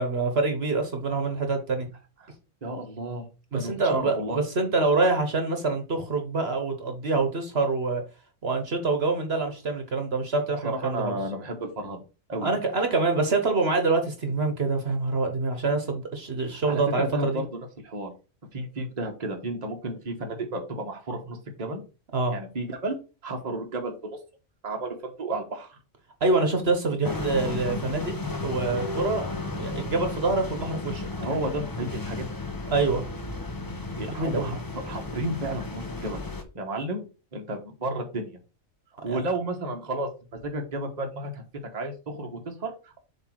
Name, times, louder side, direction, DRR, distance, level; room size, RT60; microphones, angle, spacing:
voice 1, 0.0-1.9 3.5-8.0 8.4-11.2 12.4-17.4 22.1-22.3 26.2-28.1 28.4-31.1 32.7-33.0 34.2-34.6 39.1-39.2, right 3 dB, 50° right, 1.4 m, -26 dB
voice 2, 2.6-3.3 3.5-4.4 10.6-12.0 12.3-12.5 16.5-18.1 18.5-21.8 22.3-22.9 23.2-24.2 24.6-25.8 31.2-32.2 33.9-34.6 34.8-36.2 36.5-37.0 37.3-38.3 39.0-41.4 41.7-43.0, right 1 dB, 30° right, 1.2 m, -32 dB
sound 1, 27.0-36.4, left 2 dB, 20° left, 0.6 m, -33 dB
7.4 x 3.2 x 4.7 m
omnidirectional pair, 1.4 m